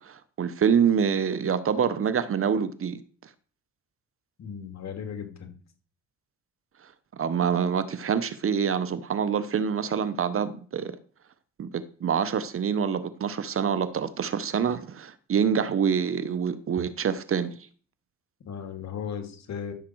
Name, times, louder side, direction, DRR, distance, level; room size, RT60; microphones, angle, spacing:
voice 1, 0.0-3.0 7.1-11.0 11.6-17.6, right 7 dB, 45° right, 1.0 m, -26 dB
voice 2, 4.4-5.5 18.4-19.7, left 7 dB, 60° left, 2.8 m, -36 dB
14.0 x 7.4 x 4.7 m
cardioid pair, 90°, 30 cm